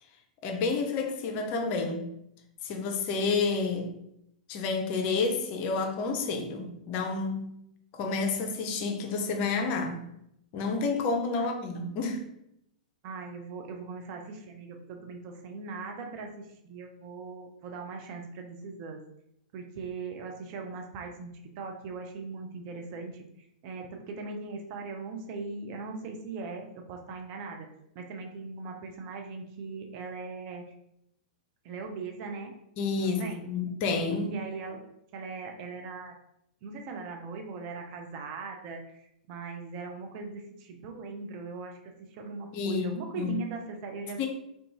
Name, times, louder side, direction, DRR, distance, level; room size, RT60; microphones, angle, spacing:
voice 1, 0.4-2.1 2.6-3.9 4.5-7.5 7.9-10.0 10.5-12.2 32.8-34.4 42.5-42.9 43.2-43.4 44.2-44.3, left 4 dB, 40° left, 3 dB, 0.5 m, -29 dB
voice 2, 13.0-19.0 19.5-23.2 23.6-27.7 28.0-30.7 31.6-32.5 33.0-33.5 34.3-34.8 35.1-36.2 36.6-44.3, right 4 dB, 40° right, 3 dB, 0.4 m, -40 dB
2.5 x 2.2 x 2.9 m, 0.77 s
figure-of-eight pair, 100°, 4 cm